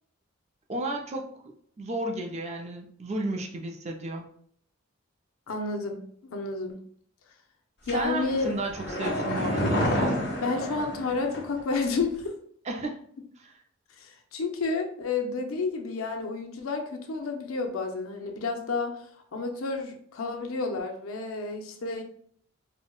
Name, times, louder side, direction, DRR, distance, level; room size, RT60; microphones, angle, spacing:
voice 1, 0.7-1.4 1.8-4.2 7.9-10.2 12.7-13.0 13.4-13.5, right 2 dB, 30° right, 2 dB, 0.4 m, -33 dB
voice 2, 5.5-6.0 6.3-6.7 7.9-8.5 10.4-12.4 14.0-19.0 19.3-22.0, left 3 dB, 85° left, 4 dB, 0.5 m, -30 dB
sound 1, 7.9-11.6 11.9-12.0, equal, 55° left, 0.9 m, -29 dB
4.2 x 2.1 x 2.2 m, 0.63 s
head